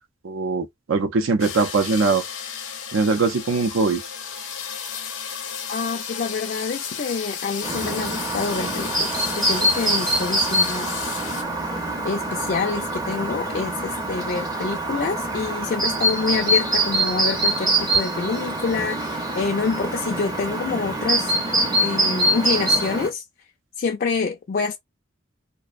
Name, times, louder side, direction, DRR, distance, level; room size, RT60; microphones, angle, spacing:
voice 1, 0.2-2.2 2.9-4.0, right 4 dB, 75° right, 0.5 m, -21 dB
sound 1, 1.4-11.4, left 7 dB, 90° left, 0.7 m, -33 dB
voice 2, 5.7-10.9 12.0-21.3 21.8-23.2 23.8-24.8, left 4 dB, 45° left, 0.3 m, -27 dB
Chirp tweet, 7.6-23.1, right 1 dB, 20° right, 0.6 m, -24 dB
2.5 x 2.0 x 2.4 m
head